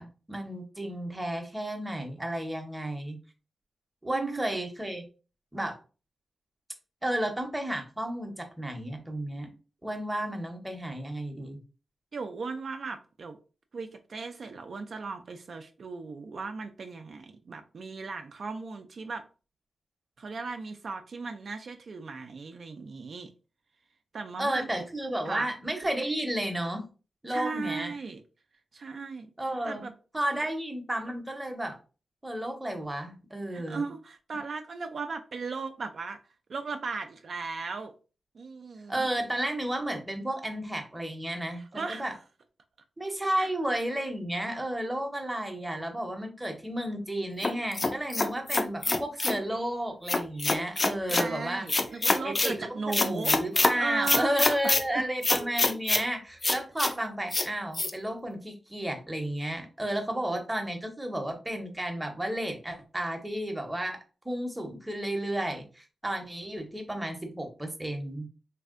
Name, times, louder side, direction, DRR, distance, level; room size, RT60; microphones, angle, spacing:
voice 1, 0.0-3.2 4.0-5.1 5.5-5.8 7.0-9.5 9.8-11.6 24.4-26.9 27.2-27.9 29.4-29.8 30.1-31.8 32.2-33.8 38.9-41.6 41.9-42.1 43.0-51.7 52.2-52.7 53.0-68.3, right 1 dB, 10° right, 0.7 m, -32 dB
voice 2, 4.1-4.5 12.1-13.4 13.7-19.2 20.2-23.3 24.1-24.7 25.2-25.5 27.3-28.2 28.7-29.3 29.6-29.9 30.3-30.4 33.5-36.2 36.5-37.9 38.3-39.1 41.6-42.1 43.3-43.5 51.0-55.0, right 4 dB, 60° right, 0.3 m, -37 dB
sound 1, 47.4-49.4 50.1-51.3 51.7-52.5 52.9-53.7 54.1-54.8 55.2-56.0 56.4-56.9 57.3-57.5 57.7-57.9, left 2 dB, 30° left, 0.3 m, -25 dB
3.2 x 2.6 x 2.4 m
wide cardioid pair, 120°, 0 cm